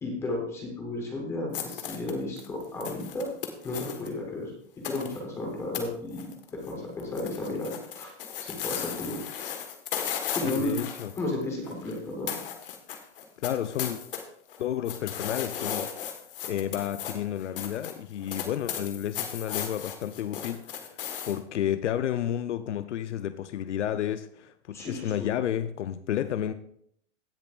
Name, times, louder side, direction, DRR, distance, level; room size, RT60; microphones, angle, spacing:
voice 1, 0.0-3.3 3.6-8.1 8.4-9.2 10.2-10.8 11.2-12.3 24.7-25.3, left 2 dB, 5° left, 0 dB, 0.9 m, -33 dB
sound 1, 1.5-4.1 4.8-5.2 5.7-5.8 6.1-6.7 7.0-12.0 12.3-14.2 14.5-21.4, left 8 dB, 50° left, 1.5 m, -36 dB
voice 2, 10.4-11.1 13.4-14.0 14.6-16.2 16.4-20.9 21.3-26.5, left 10 dB, 75° left, 11 dB, 0.7 m, -31 dB
16.5 x 7.0 x 2.4 m, 0.67 s
supercardioid pair, 180°, 36 cm